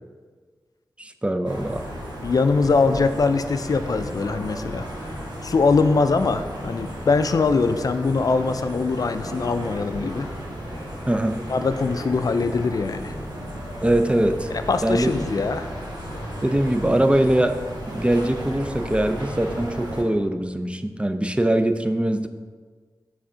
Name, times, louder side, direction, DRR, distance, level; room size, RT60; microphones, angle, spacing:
voice 1, 1.0-1.8 11.1-11.4 13.8-14.5 14.8-15.2 16.4-17.6 17.9-22.3, right 1 dB, 15° right, 8 dB, 0.4 m, -22 dB
sound 1, 1.4-20.0, equal, 70° right, 1.5 m, -34 dB
voice 2, 2.2-4.9 5.4-10.3 11.5-13.1 14.7-15.7, left 4 dB, 55° left, 9 dB, 0.4 m, -22 dB
6.3 x 3.4 x 4.9 m, 1.5 s
cardioid pair, 55°, 7 cm